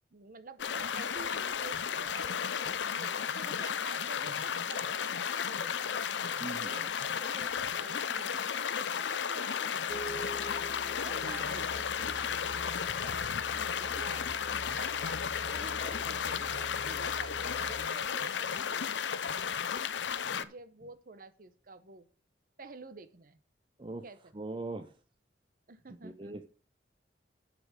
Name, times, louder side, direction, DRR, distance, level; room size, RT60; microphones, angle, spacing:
voice 1, 0.1-5.9 6.6-8.5 8.9-10.7 11.0-13.5 13.8-14.3 14.8-18.9 19.2-19.3 20.2-22.1 22.6-23.4 24.0-24.2 24.5-24.6 25.7-26.5, right 3 dB, 50° right, 12 dB, 0.9 m, -49 dB
sound 1, 0.6-20.4, left 7 dB, 85° left, 0.6 m, -34 dB
voice 2, 6.4-6.7 14.7-14.8 20.2-20.5 23.8-24.0 24.3-25.0 26.0-26.5, right 2 dB, 30° right, 8 dB, 0.5 m, -41 dB
sound 2, 9.9-17.9, left 1 dB, 35° left, 0.6 m, -45 dB
10.0 x 5.1 x 6.5 m, 0.40 s
head